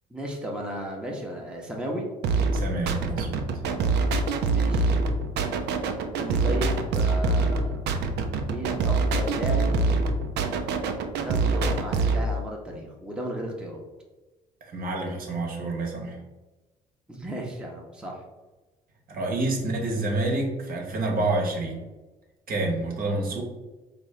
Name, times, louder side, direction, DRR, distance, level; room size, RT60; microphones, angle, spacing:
voice 1, 0.1-2.1 4.4-5.0 6.1-7.7 8.4-9.7 11.2-13.8 17.1-18.2, equal, 5° right, -1 dB, 0.8 m, -34 dB
sound 1, 2.2-12.2, right 3 dB, 65° right, 0.5 m, -25 dB
voice 2, 2.5-3.5 14.6-16.2 19.1-21.8 22.5-23.4, right 2 dB, 50° right, 0 dB, 1.0 m, -28 dB
3.5 x 2.6 x 3.2 m, 1.1 s
hypercardioid pair, 60°, 19 cm